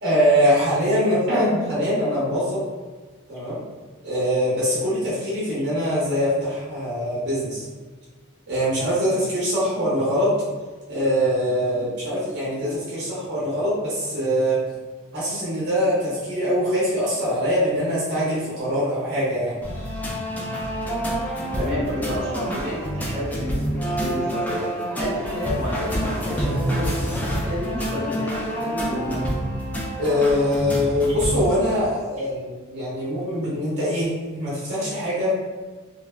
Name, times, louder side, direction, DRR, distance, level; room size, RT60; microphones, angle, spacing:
voice 1, 0.0-2.7 3.3-3.6 4.0-7.7 8.5-10.4 10.9-14.6 15.1-19.6 30.0-35.4, equal, 55° right, -9 dB, 0.8 m, -23 dB
sound 1, 19.6-31.5, equal, 10° left, 0.3 m, -27 dB
voice 2, 21.5-24.6 25.0-27.0 27.3-29.2, left 1 dB, 25° right, -8 dB, 1.0 m, -30 dB
3.2 x 2.0 x 2.3 m, 1.4 s
head